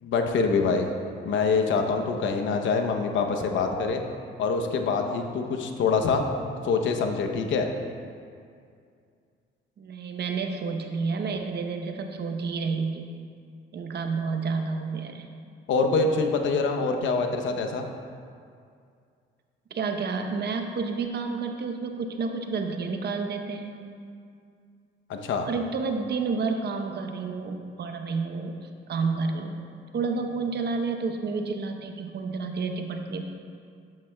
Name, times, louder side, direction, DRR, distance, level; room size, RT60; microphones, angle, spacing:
voice 1, 0.0-0.9 1.2-4.0 4.4-6.2 6.6-7.7 15.7-17.9 25.1-25.5, left 4 dB, 75° left, 4 dB, 0.9 m, -25 dB
voice 2, 9.8-13.1 13.7-15.3 19.7-23.8 25.5-28.5 28.9-29.5 29.9-33.2, right 4 dB, 55° right, 4 dB, 0.9 m, -30 dB
11.5 x 8.9 x 2.3 m, 2.3 s
cardioid pair, 90°, 20 cm